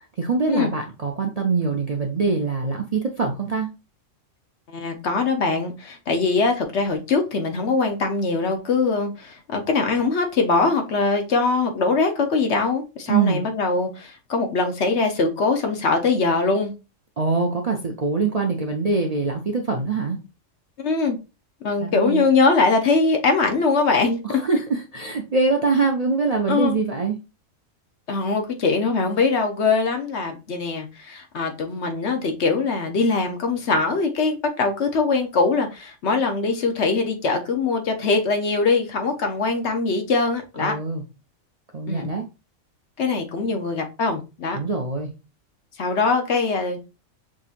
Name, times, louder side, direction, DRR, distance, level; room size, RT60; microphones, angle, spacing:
voice 1, 0.2-3.7 13.1-13.5 17.2-20.2 21.8-22.2 24.2-27.1 40.6-41.0 41.7-42.3 44.5-45.1, right 4 dB, 45° right, 1 dB, 0.5 m, -23 dB
voice 2, 4.7-16.7 20.8-21.2 21.6-24.4 26.5-26.8 28.1-40.7 41.9-42.2 43.0-44.6 45.8-46.9, left 4 dB, 65° left, 5 dB, 1.1 m, -22 dB
6.1 x 2.8 x 2.5 m, 0.28 s
omnidirectional pair, 1.3 m